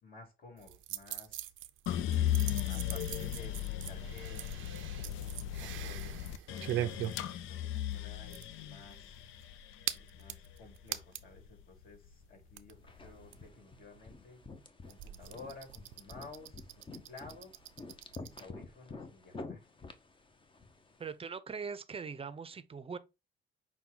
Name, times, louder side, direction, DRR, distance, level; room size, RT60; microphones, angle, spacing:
voice 1, 0.0-1.5 2.5-9.2 10.0-14.4 14.9-16.7 17.1-17.5 18.2-19.7, left 3 dB, 50° left, 2.2 m, -54 dB
sound 1, 0.6-11.4 11.8-11.9 12.1-18.4, right 13 dB, 80° right, 0.5 m, -43 dB
sound 2, 1.9-12.1 12.5-13.3, left 11 dB, 85° left, 0.5 m, -37 dB
sound 3, 12.9-21.1, left 3 dB, 25° left, 0.7 m, -50 dB
voice 2, 21.0-23.0, right 5 dB, 30° right, 0.6 m, -41 dB
5.8 x 2.3 x 3.9 m
cardioid pair, 90°, 20 cm